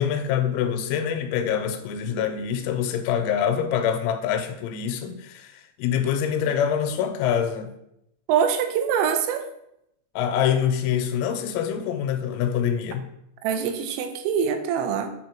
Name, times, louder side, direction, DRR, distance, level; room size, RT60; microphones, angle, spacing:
voice 1, 0.0-7.7 10.2-13.1, left 8 dB, 90° left, 6 dB, 3.3 m, -25 dB
voice 2, 8.3-9.5 13.4-15.1, right 7 dB, 85° right, 7 dB, 3.2 m, -24 dB
9.2 x 3.2 x 4.3 m, 0.79 s
omnidirectional pair, 5.9 m